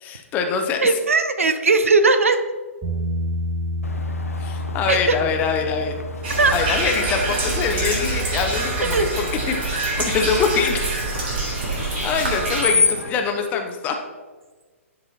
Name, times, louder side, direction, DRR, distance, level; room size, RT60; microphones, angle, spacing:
voice 1, 0.0-0.9 4.4-5.9 6.5-10.8 12.0-14.0, left 6 dB, 20° left, 4 dB, 0.6 m, -24 dB
voice 2, 0.8-2.4 4.9-5.2 6.4-6.6 8.9-9.1, right 3 dB, 70° right, 10 dB, 0.5 m, -18 dB
Bass guitar, 2.8-9.1, left 1 dB, 5° right, 2.0 m, -30 dB
Screech, 3.8-13.1, left 4 dB, 80° left, 0.5 m, -30 dB
sound 1, 6.2-12.7, right 2 dB, 45° right, 1.7 m, -25 dB
10.5 x 4.0 x 2.7 m, 1.3 s
figure-of-eight pair, 120°, 8 cm